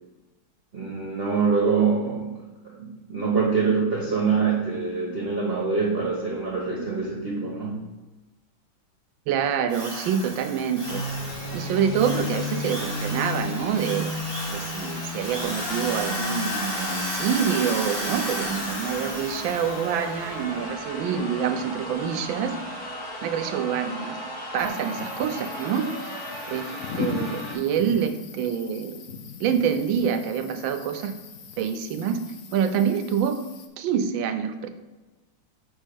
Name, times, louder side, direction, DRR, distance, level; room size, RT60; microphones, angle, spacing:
voice 1, 0.7-2.3 2.6-7.8, right 5 dB, 35° right, -3 dB, 1.0 m, -25 dB
voice 2, 9.3-11.0 11.5-14.1 14.5-22.6 23.2-24.2 24.5-25.9 26.5-29.0 29.4-31.1 31.6-32.2 32.5-33.4 33.8-34.7, right 7 dB, 80° right, 8 dB, 1.4 m, -26 dB
Drill, 9.7-20.1, equal, 15° left, 1.5 m, -34 dB
sound 1, 10.8-27.5, left 1 dB, 50° left, 2.0 m, -34 dB
sound 2, 24.6-33.7, left 6 dB, 75° left, 0.7 m, -39 dB
5.7 x 4.5 x 5.3 m, 1.2 s
omnidirectional pair, 2.2 m